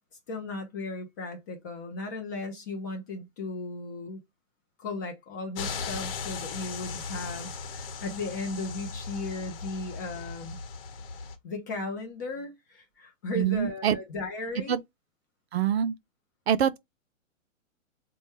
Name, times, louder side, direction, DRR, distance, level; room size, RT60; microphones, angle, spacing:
voice 1, 0.3-4.2 4.8-10.6 11.4-14.8, left 2 dB, 15° left, 0.4 m, -36 dB
sound 1, 5.6-11.3, left 5 dB, 45° left, 1.0 m, -37 dB
voice 2, 13.3-14.0 14.7-14.8 15.5-16.0 16.5-16.8, right 9 dB, 55° right, 0.5 m, -25 dB
4.2 x 2.2 x 3.1 m
hypercardioid pair, 130°, 40 cm